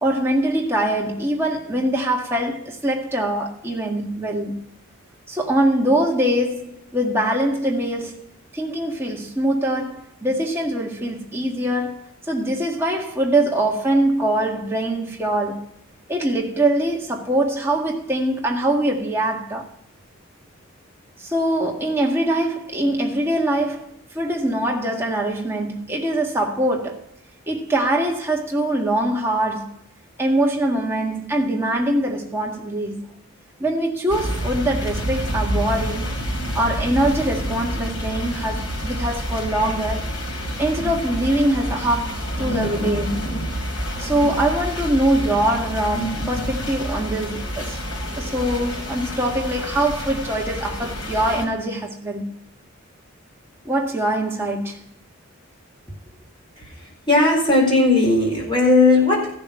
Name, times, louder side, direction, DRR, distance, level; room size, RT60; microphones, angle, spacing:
voice 1, 0.0-4.6 5.3-8.2 8.5-15.7 16.1-19.7 21.2-27.0 27.5-29.8 30.2-33.1 33.6-36.2 36.5-40.1 40.6-43.4 44.0-47.8 48.2-52.4 53.7-54.9, right 1 dB, 10° right, 1.8 m, -23 dB
sound 1, 34.1-51.4, equal, 90° left, 3.9 m, -28 dB
voice 2, 56.6-59.3, left 2 dB, 25° left, 4.6 m, -17 dB
15.0 x 7.0 x 5.9 m
head